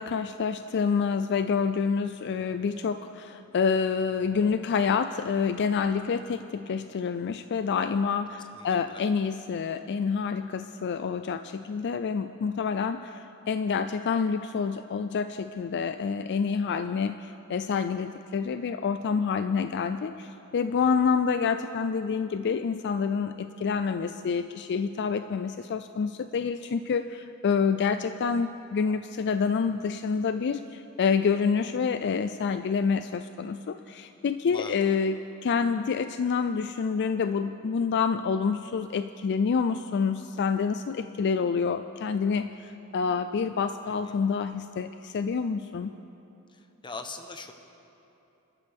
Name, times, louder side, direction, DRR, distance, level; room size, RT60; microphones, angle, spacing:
voice 1, 0.0-45.9, left 5 dB, 50° left, 10 dB, 0.4 m, -28 dB
voice 2, 8.3-9.0 20.8-20.9 34.5-34.8 43.9-44.2 46.5-47.5, left 3 dB, 20° left, 6 dB, 0.9 m, -42 dB
27.0 x 12.5 x 3.5 m, 2.9 s
head